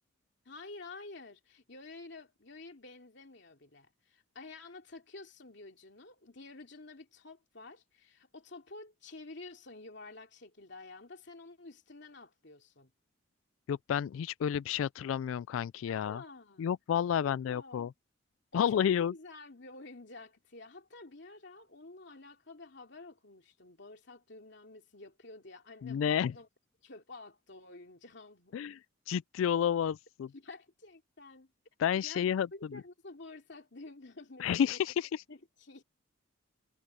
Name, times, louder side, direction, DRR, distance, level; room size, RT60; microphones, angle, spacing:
voice 1, 0.4-12.9 15.9-16.7 17.2-17.9 18.5-26.5 26.8-28.6 30.3-31.5 32.0-34.8 35.3-35.8, left 3 dB, 60° left, 3.0 m, -50 dB
voice 2, 13.7-16.2 16.6-17.9 18.5-19.1 25.8-26.3 28.5-28.8 29.1-30.3 31.8-32.5 34.4-35.2, left 8 dB, 85° left, 0.3 m, -30 dB
head